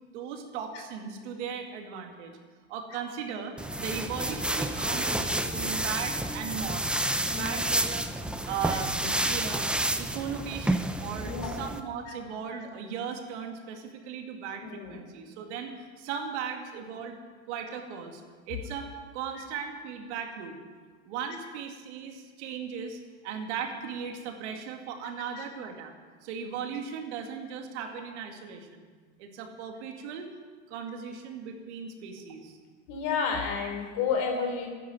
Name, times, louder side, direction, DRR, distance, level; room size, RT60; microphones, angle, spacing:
voice 1, 0.1-2.3 2.7-7.0 7.3-9.7 10.0-17.2 17.5-20.6 21.0-25.9 26.2-28.8 29.2-30.3 30.7-32.6, right 7 dB, 75° right, 3 dB, 2.4 m, -37 dB
sound 1, 3.6-11.8, right 1 dB, 5° right, 0.7 m, -30 dB
voice 2, 7.3-7.6 8.7-8.8 11.2-11.6 14.6-15.0 32.9-34.7, left 5 dB, 60° left, 3 dB, 3.8 m, -31 dB
12.0 x 9.7 x 9.2 m, 1.5 s
supercardioid pair, 110°, 35 cm